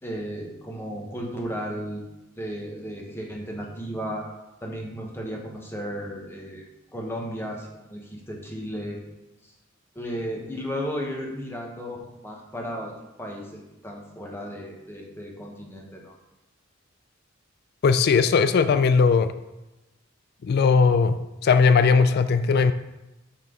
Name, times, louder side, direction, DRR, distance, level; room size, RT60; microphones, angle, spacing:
voice 1, 0.0-2.0 2.4-4.3 4.6-9.0 9.9-12.9 13.2-16.1, equal, 10° left, -1 dB, 1.1 m, -34 dB
voice 2, 17.8-19.3 20.4-22.7, left 5 dB, 55° left, 11 dB, 0.3 m, -19 dB
6.3 x 5.8 x 3.8 m, 0.98 s
head